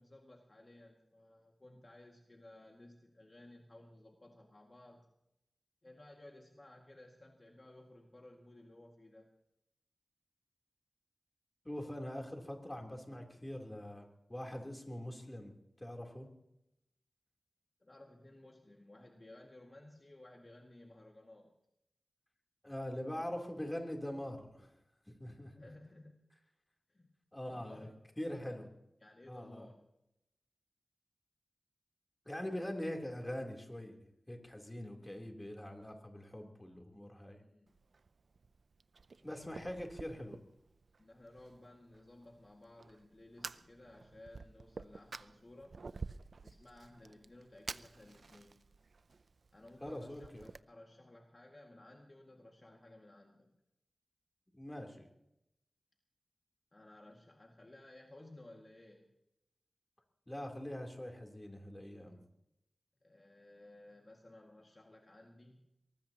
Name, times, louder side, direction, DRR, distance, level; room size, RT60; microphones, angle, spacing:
voice 1, 0.0-5.1 5.8-9.3 17.8-21.5 25.6-26.2 26.9-27.2 27.5-28.1 28.5-28.6 29.0-29.8 37.2-37.8 41.0-45.8 46.4-48.6 49.5-53.6 56.7-59.1 63.0-65.8, left 1 dB, 35° left, 0 dB, 2.0 m, -57 dB
voice 2, 11.6-14.0 14.3-15.5 15.8-16.3 22.6-24.7 25.1-25.7 27.3-27.9 28.2-28.7 29.3-29.7 32.2-34.0 34.3-37.4 39.2-40.4 49.8-50.4 54.5-55.1 60.3-62.2, left 1 dB, 15° left, 2 dB, 3.3 m, -43 dB
Fire, 37.7-50.6, right 4 dB, 70° right, 0.5 m, -51 dB
23.0 x 19.0 x 2.9 m, 0.84 s
wide cardioid pair, 75°, 0 cm